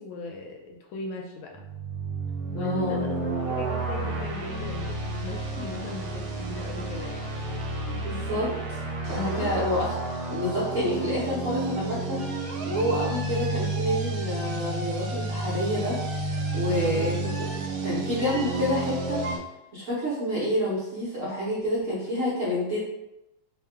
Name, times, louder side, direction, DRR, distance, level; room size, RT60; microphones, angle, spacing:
voice 1, 0.0-1.6 2.5-7.7 9.1-9.5 16.7-17.2, left 3 dB, 75° left, 1 dB, 1.3 m, -38 dB
sound 1, 1.5-19.4, right 2 dB, 75° right, 1.4 m, -31 dB
voice 2, 2.6-3.0 7.9-8.8 9.1-9.8 10.3-12.2 12.6-16.0 16.5-17.5 17.8-19.2 19.7-22.8, left 1 dB, 55° right, -9 dB, 0.9 m, -28 dB
3.6 x 2.3 x 3.3 m, 0.91 s
omnidirectional pair, 2.4 m